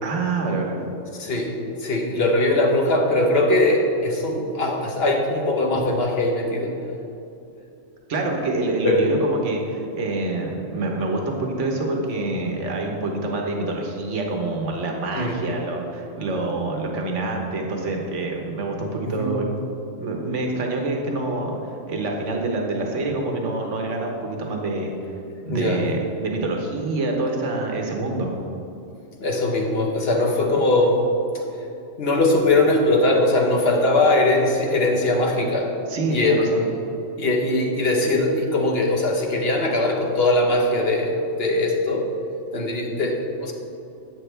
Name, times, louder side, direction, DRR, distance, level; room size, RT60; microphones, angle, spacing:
voice 1, 0.0-0.8 8.1-19.5 20.0-24.9 25.4-28.3 35.9-36.6, right 2 dB, 70° right, 1 dB, 1.5 m, -26 dB
voice 2, 1.2-1.5 1.8-6.7 8.8-9.0 15.1-15.4 19.2-19.4 25.5-25.8 29.2-31.0 32.0-35.7 36.1-36.4 37.2-42.1 42.5-43.5, left 2 dB, 50° left, 1 dB, 1.2 m, -21 dB
11.0 x 8.3 x 3.4 m, 2.8 s
omnidirectional pair, 1.3 m